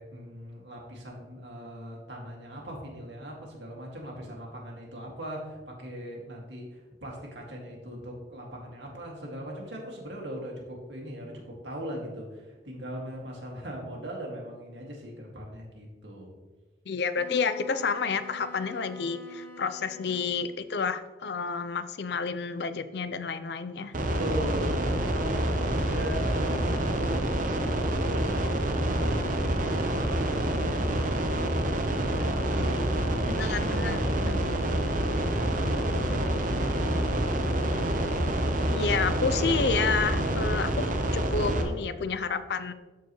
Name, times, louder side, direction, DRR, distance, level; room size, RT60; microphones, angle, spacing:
voice 1, 0.0-16.4 24.2-31.0 31.9-34.8 35.2-37.9, equal, 75° right, -1 dB, 2.1 m, -40 dB
voice 2, 16.9-23.9 33.3-34.5 38.7-42.7, left 5 dB, 65° left, 12 dB, 0.5 m, -30 dB
Wind instrument woodwind instrument, 17.2-20.7, left 3 dB, 10° left, 1.2 m, -46 dB
sound 1, 23.9-41.6, right 1 dB, 45° right, 0.9 m, -27 dB
13.0 x 4.7 x 3.1 m, 1.3 s
head